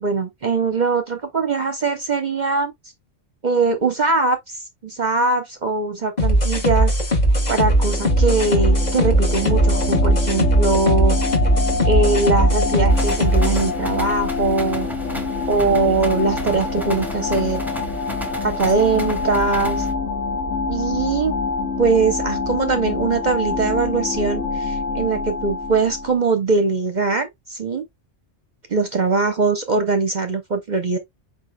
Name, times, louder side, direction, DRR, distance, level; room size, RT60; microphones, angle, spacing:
voice 1, 0.0-2.7 3.4-7.0 7.5-11.2 11.8-14.9 15.5-17.6 18.4-19.9 20.7-21.4 21.8-27.8 28.7-31.0, right 4 dB, 45° right, 0.7 m, -21 dB
sound 1, 6.2-13.7, right 1 dB, 35° left, 1.2 m, -18 dB
sound 2, 7.3-26.2, left 3 dB, 75° left, 2.2 m, -26 dB
sound 3, 12.9-19.9, equal, ahead, 0.9 m, -34 dB
5.0 x 4.8 x 2.2 m
omnidirectional pair, 1.3 m